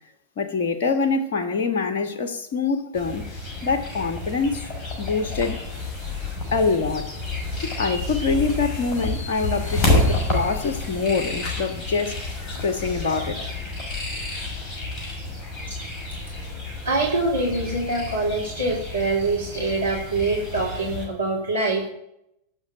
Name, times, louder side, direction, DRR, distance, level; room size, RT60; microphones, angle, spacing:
voice 1, 0.4-3.2 3.6-4.7 5.0-5.6 6.5-7.2 7.8-12.2 12.6-13.5, left 4 dB, 50° left, 1.5 m, -25 dB
sound 1, 2.9-21.1, left 2 dB, 20° left, 6.4 m, -29 dB
voice 2, 16.1-16.5 16.8-21.9, right 2 dB, 85° right, 3.1 m, -25 dB
18.0 x 6.4 x 8.7 m
figure-of-eight pair, 90°, 0 cm